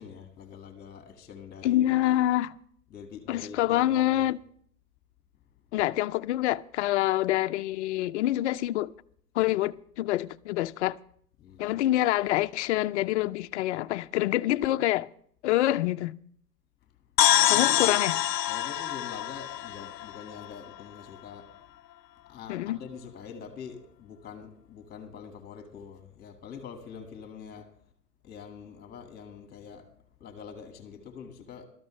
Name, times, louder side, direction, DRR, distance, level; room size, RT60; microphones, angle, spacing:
voice 1, 0.0-2.0 2.9-4.3 11.4-11.8 17.3-18.0 18.5-21.5 22.3-27.7 28.2-29.9 30.2-31.7, left 6 dB, 20° left, 1.9 m, -44 dB
voice 2, 1.6-2.5 3.3-4.4 5.7-8.9 9.3-11.0 11.6-15.1 15.4-16.2 17.5-18.2 22.5-22.8, left 15 dB, 50° left, 0.5 m, -26 dB
sound 1, 17.2-20.8, left 13 dB, 85° left, 0.7 m, -25 dB
18.0 x 13.0 x 3.2 m
hypercardioid pair, 130°, 48 cm